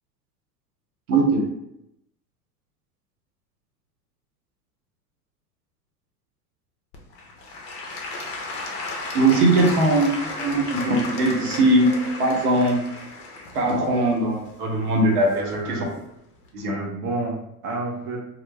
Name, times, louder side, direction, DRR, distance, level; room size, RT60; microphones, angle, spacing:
voice 1, 1.1-1.5 9.1-12.8 13.5-15.8 16.5-16.7, right 2 dB, 75° right, 1 dB, 0.9 m, -20 dB
Applause / Crowd, 6.9-15.8 16.4-16.5, left 2 dB, 30° left, 0.5 m, -34 dB
voice 2, 15.3-16.0 16.7-18.2, right 2 dB, 30° right, 0 dB, 0.5 m, -30 dB
2.1 x 2.0 x 3.2 m, 0.80 s
hypercardioid pair, 90°, 46 cm